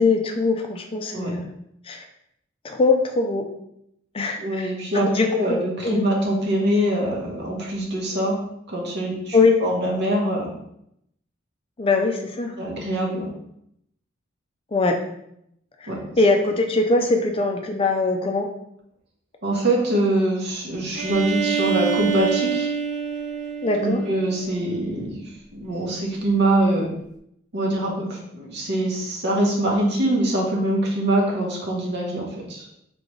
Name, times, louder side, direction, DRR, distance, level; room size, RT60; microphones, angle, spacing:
voice 1, 0.0-1.5 1.9-2.0 2.6-3.4 4.1-4.7 4.9-6.1 9.3-9.6 11.8-12.5 14.7-15.0 15.8-15.9 16.2-18.5 23.6-24.0, left 3 dB, 30° left, 4 dB, 0.4 m, -21 dB
voice 2, 4.4-8.4 8.7-10.5 12.6-13.3 15.9-16.0 19.4-22.7 23.8-25.2 25.5-26.9 27.5-32.7, right 1 dB, 60° right, -1 dB, 1.0 m, -24 dB
Bowed string instrument, 20.9-24.7, right 7 dB, 40° right, 0.5 m, -26 dB
3.8 x 3.3 x 3.1 m, 0.75 s
head